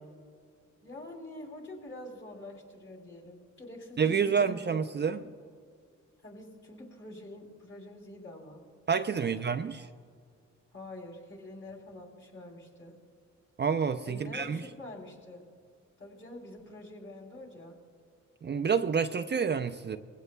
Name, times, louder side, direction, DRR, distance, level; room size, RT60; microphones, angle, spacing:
voice 1, 0.8-5.3 6.2-8.6 9.1-9.7 10.7-13.0 14.0-15.4 16.0-17.8, left 1 dB, 40° left, 0 dB, 3.6 m, -46 dB
voice 2, 4.0-5.2 8.9-9.9 13.6-14.6 18.4-20.0, right 6 dB, 35° right, 8 dB, 0.5 m, -28 dB
21.5 x 16.5 x 2.2 m, 2.1 s
cardioid pair, 80°, 29 cm